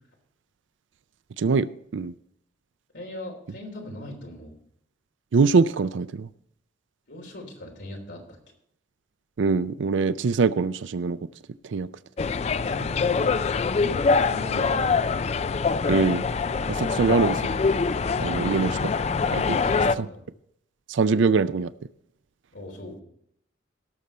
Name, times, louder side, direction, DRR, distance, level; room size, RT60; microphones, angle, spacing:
voice 1, 2.9-4.5 7.1-8.4 12.6-15.1 16.9-17.3 18.3-18.9 19.5-20.2 22.5-23.0, left 1 dB, 70° left, 1 dB, 3.3 m, -39 dB
voice 2, 5.3-6.3 9.4-11.2 11.7-11.9 15.9-16.3 16.7-17.4 18.2-18.8 19.3-19.6 20.0-20.1 20.9-21.7, right 4 dB, 80° right, 15 dB, 0.4 m, -23 dB
sound 1, 12.2-20.0, left 4 dB, 35° left, 0.3 m, -24 dB
17.5 x 6.8 x 4.3 m, 0.72 s
head